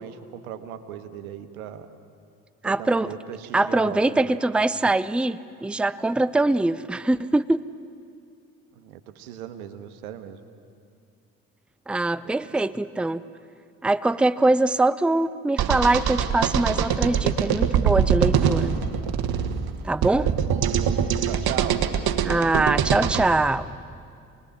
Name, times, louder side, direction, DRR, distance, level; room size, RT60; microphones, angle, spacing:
voice 1, 0.0-1.9 2.6-4.4 8.8-10.4 12.2-12.5 20.1-21.8, right 9 dB, 90° right, 9 dB, 1.3 m, -38 dB
voice 2, 2.6-3.1 3.5-7.6 11.9-13.2 13.8-18.7 19.8-20.3 22.2-23.7, right 2 dB, 5° right, 16 dB, 0.6 m, -23 dB
sound 1, 15.6-23.3, right 8 dB, 60° right, 1.6 m, -23 dB
28.0 x 20.0 x 7.4 m, 2.4 s
hypercardioid pair, 55°, 42 cm